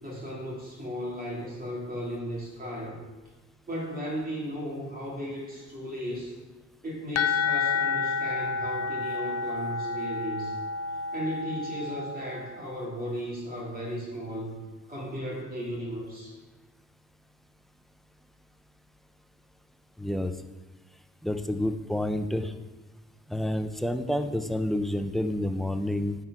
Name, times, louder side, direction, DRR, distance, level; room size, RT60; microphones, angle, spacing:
voice 1, 0.0-3.0 3.7-6.3 6.8-10.6 11.1-14.6 14.9-16.3, equal, 30° right, -4 dB, 2.5 m, -35 dB
sound 1, 7.1-12.7, left 5 dB, 55° left, 0.6 m, -30 dB
voice 2, 20.0-20.3 21.2-22.5 23.3-26.2, left 1 dB, ahead, 7 dB, 0.4 m, -29 dB
9.3 x 4.6 x 4.8 m, 1.2 s
cardioid pair, 115°, 31 cm